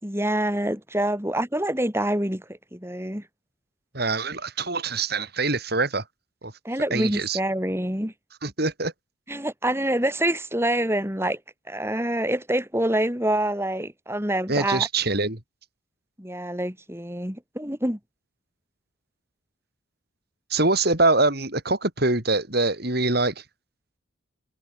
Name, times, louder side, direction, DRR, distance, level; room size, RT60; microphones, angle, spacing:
voice 1, 0.0-3.2 6.6-8.1 9.3-11.4 11.7-14.9 16.2-18.0, right 1 dB, 10° right, 4.4 m, -26 dB
voice 2, 3.9-6.0 6.4-6.5 6.9-7.4 8.4-8.9 14.5-15.4 20.5-23.4, right 3 dB, 50° right, 4.1 m, -24 dB
head